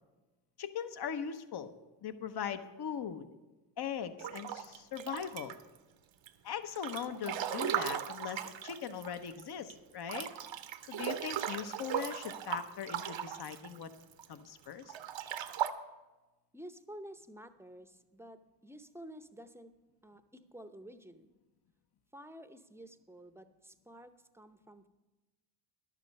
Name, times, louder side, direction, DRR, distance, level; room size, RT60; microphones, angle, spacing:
voice 1, 0.6-1.7 2.0-3.2 3.8-5.6 6.4-10.3 10.9-13.9 14.3-14.9, left 8 dB, 50° left, 11 dB, 0.9 m, -40 dB
Breathing / Bathtub (filling or washing) / Splash splatter, 4.2-5.8 6.3-9.4 9.7-9.8 10.1-14.3 14.8-15.7, right 9 dB, 60° right, 0.8 m, -38 dB
voice 2, 16.5-19.7 20.0-21.3 22.1-24.9, equal, 5° right, 10 dB, 0.6 m, -51 dB
11.0 x 7.6 x 5.3 m, 1.1 s
supercardioid pair, 55°, 50 cm